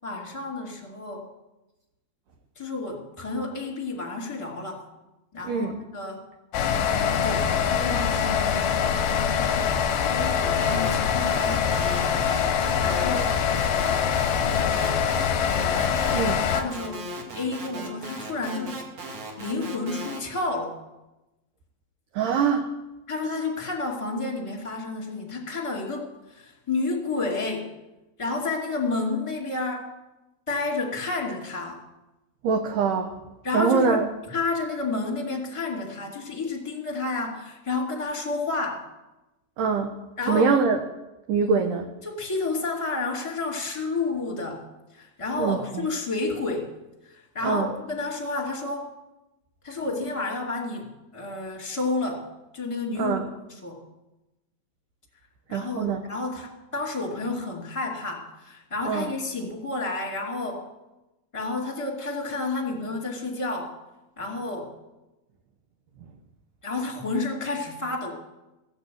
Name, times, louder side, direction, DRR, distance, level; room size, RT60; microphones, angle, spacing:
voice 1, 0.0-1.3 2.5-4.8 5.3-6.2 7.0-9.7 10.0-12.0 12.4-13.3 14.3-15.3 16.0-17.1 17.3-18.8 19.4-20.7 23.1-27.7 28.2-29.9 30.5-31.8 33.4-38.8 40.2-40.5 42.0-44.6 44.9-46.7 47.0-48.9 49.6-52.2 52.5-53.2 53.5-53.8 55.5-60.6 61.3-63.7 64.2-64.7 66.6-68.1, left 3 dB, 10° left, -2 dB, 1.7 m, -31 dB
sound 1, 6.5-16.6, left 7 dB, 70° left, 2.1 m, -24 dB
sound 2, 10.2-10.3 10.6-20.2, right 2 dB, 45° right, 2.6 m, -37 dB
voice 2, 16.1-16.4 22.1-22.7 32.4-33.1 33.5-34.1 39.6-40.0 40.3-40.8 41.3-41.9 45.4-45.9 47.4-47.7 53.0-53.3 55.5-56.0 58.9-59.1, right 5 dB, 80° right, 5 dB, 1.9 m, -23 dB
16.0 x 8.7 x 7.8 m, 1.0 s
omnidirectional pair, 5.0 m